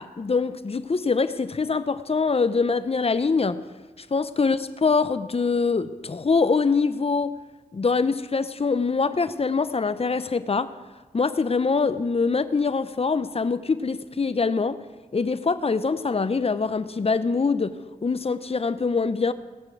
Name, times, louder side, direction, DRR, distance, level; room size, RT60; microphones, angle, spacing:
voice 1, 0.0-3.6 4.0-7.3 7.7-10.7 11.1-14.8 15.1-17.8 18.0-19.3, left 4 dB, 40° left, 12 dB, 0.9 m, -24 dB
17.5 x 6.6 x 8.6 m, 1.3 s
cardioid pair, 55°, 16 cm